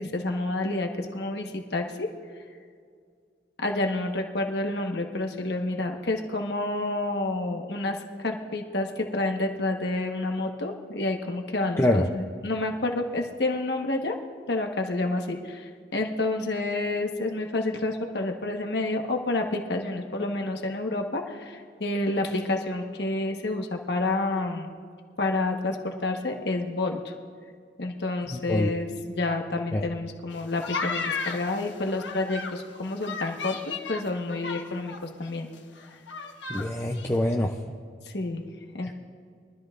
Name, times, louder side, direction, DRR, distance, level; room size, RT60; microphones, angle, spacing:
voice 1, 0.0-2.1 3.6-14.2 14.5-24.7 25.2-27.1 27.8-35.5 38.1-38.4 38.7-38.9, left 2 dB, 65° left, 3 dB, 1.3 m, -29 dB
voice 2, 28.3-28.7 29.7-29.8 36.5-37.5 38.8-38.9, left 1 dB, 15° left, 1 dB, 0.5 m, -25 dB
sound 1, 30.3-32.6 33.0-35.0 35.2-35.3 35.6-36.7 36.9-37.2, left 4 dB, 85° left, 1.2 m, -34 dB
23.0 x 13.0 x 2.5 m, 2.1 s
head